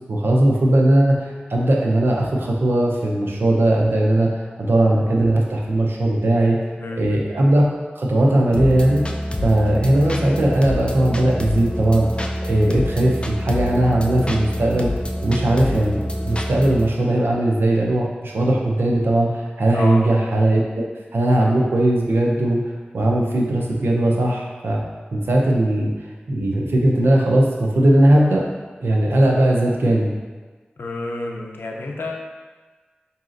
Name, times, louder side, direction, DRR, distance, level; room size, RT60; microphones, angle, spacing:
voice 1, 0.1-1.2 1.5-4.3 4.6-6.6 7.0-7.6 8.0-9.0 9.4-14.9 15.2-20.8 21.1-22.6 22.9-24.8 25.1-25.9 26.3-28.4 28.8-30.1, right 1 dB, 90° right, -2 dB, 0.5 m, -18 dB
voice 2, 6.8-7.1 19.7-20.0 30.8-32.2, left 2 dB, 85° left, 0 dB, 0.5 m, -29 dB
sound 1, 8.5-16.9, left 1 dB, 30° left, 0.4 m, -26 dB
4.8 x 2.7 x 2.5 m, 1.4 s
cardioid pair, 40°, 4 cm